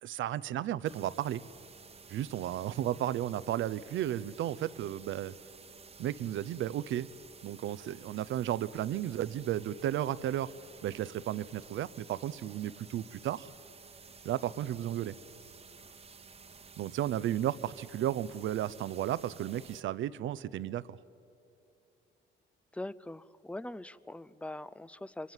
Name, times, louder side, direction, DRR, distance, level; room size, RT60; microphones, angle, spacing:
voice 1, 0.0-1.4 2.1-5.3 6.0-7.1 7.4-10.5 10.8-13.5 14.2-15.1 16.8-21.0, right 12 dB, 75° right, 17 dB, 0.7 m, -33 dB
sound 1, 0.9-19.8, right 5 dB, 30° right, 1.1 m, -53 dB
voice 2, 22.7-25.3, left 1 dB, 5° left, 18 dB, 0.6 m, -42 dB
27.0 x 24.0 x 7.4 m, 2.8 s
cardioid pair, 90°, 20 cm